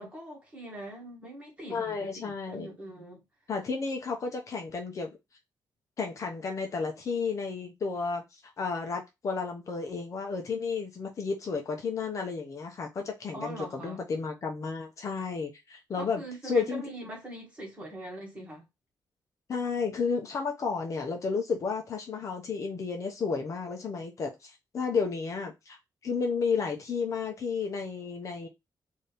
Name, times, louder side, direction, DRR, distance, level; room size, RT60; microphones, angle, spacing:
voice 1, 0.0-3.2 13.3-14.0 16.0-18.6, right 1 dB, 15° right, 1.8 m, -42 dB
voice 2, 1.7-2.7 3.5-5.1 6.0-16.8 19.5-25.8 26.0-28.5, left 5 dB, 45° left, 0.8 m, -32 dB
4.1 x 2.8 x 3.3 m
wide cardioid pair, 170°, 8 cm